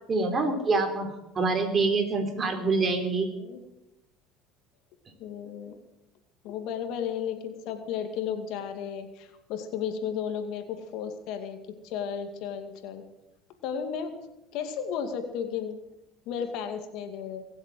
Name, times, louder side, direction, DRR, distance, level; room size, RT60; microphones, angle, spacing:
voice 1, 0.1-3.3, right 3 dB, 35° right, 5 dB, 3.8 m, -26 dB
voice 2, 5.2-5.8 6.4-13.0 13.6-14.1 14.5-15.8 16.3-17.5, left 7 dB, 70° left, 7 dB, 2.4 m, -34 dB
23.0 x 8.0 x 7.8 m, 0.93 s
supercardioid pair, 85°, 0 cm